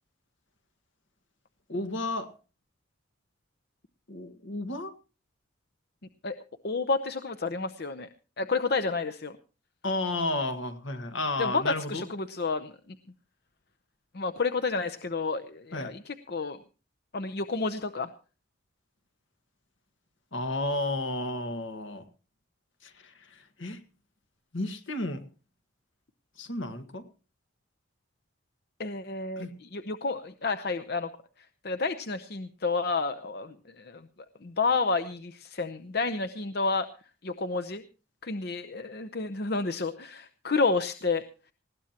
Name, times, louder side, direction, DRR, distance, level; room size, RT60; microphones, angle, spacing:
voice 1, 1.7-2.3 4.1-4.9 9.8-12.1 15.7-15.9 20.3-22.0 22.8-23.8 24.5-25.2 26.4-27.1 29.4-29.5, left 2 dB, 75° left, 8 dB, 1.8 m, -32 dB
voice 2, 6.6-8.1 8.4-9.3 11.4-12.7 14.1-16.6 17.1-18.1 28.8-31.1 31.6-34.0 34.4-36.9 37.2-37.8 38.2-41.2, left 4 dB, 50° left, 9 dB, 0.7 m, -30 dB
20.0 x 16.5 x 2.9 m, 0.35 s
head